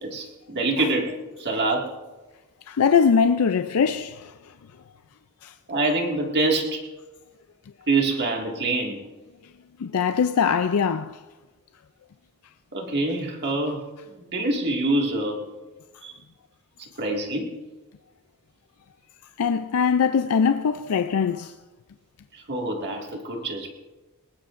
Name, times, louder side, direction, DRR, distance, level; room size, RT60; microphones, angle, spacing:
voice 1, 0.0-1.9 5.7-6.9 7.9-9.0 12.7-13.9 14.3-15.4 16.0-16.1 16.8-17.5 22.3-23.7, right 2 dB, 50° right, 2.1 m, -25 dB
voice 2, 2.7-4.3 5.4-5.5 9.8-11.2 19.4-21.5, left 6 dB, 75° left, 0.4 m, -22 dB
19.5 x 19.5 x 2.6 m
head